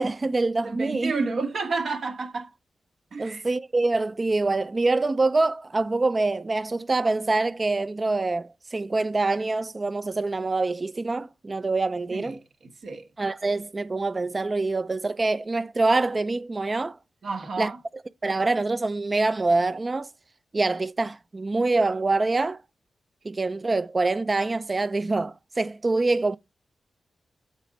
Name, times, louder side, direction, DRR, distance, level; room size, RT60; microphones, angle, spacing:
voice 1, 0.0-1.1 3.2-12.4 13.2-17.0 17.6-17.7 18.2-20.1 20.5-22.6 23.2-26.4, right 3 dB, 40° right, 0.4 m, -25 dB
voice 2, 0.6-2.5 3.1-3.4 12.1-12.3 12.6-13.1 17.2-17.8, right 4 dB, 70° right, 1.2 m, -30 dB
7.3 x 4.1 x 5.0 m
supercardioid pair, 45°, 0 cm